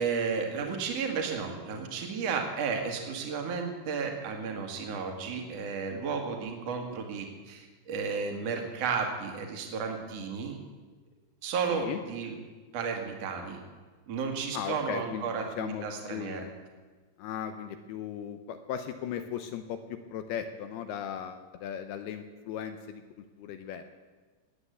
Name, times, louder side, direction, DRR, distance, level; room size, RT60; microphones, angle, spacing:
voice 1, 0.0-10.6 11.4-12.4 12.7-13.6 14.1-16.5, right 5 dB, 45° right, 3 dB, 2.5 m, -33 dB
voice 2, 14.5-16.5 17.2-23.0 23.4-23.8, left 9 dB, 75° left, 8 dB, 2.5 m, -37 dB
18.5 x 9.5 x 8.3 m, 1.4 s
omnidirectional pair, 5.1 m